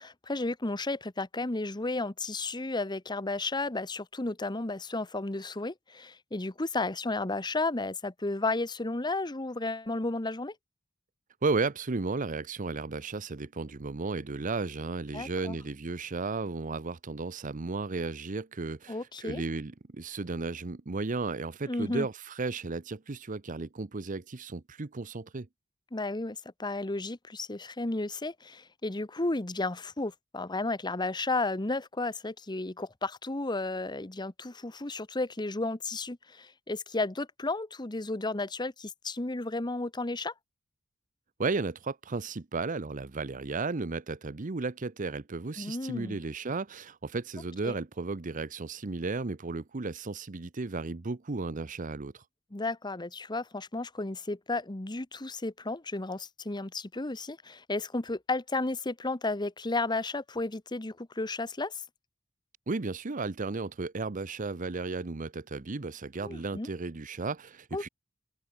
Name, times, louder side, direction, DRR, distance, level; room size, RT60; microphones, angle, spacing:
voice 1, 0.0-10.5 15.1-15.6 18.9-19.4 21.7-22.1 25.9-40.3 45.6-46.2 47.6-47.7 52.5-61.8 66.2-66.7 67.7-67.9, left 2 dB, 20° left, 1.1 m, -33 dB
voice 2, 11.4-25.5 41.4-52.2 62.7-67.9, right 3 dB, 40° right, 0.8 m, -34 dB
head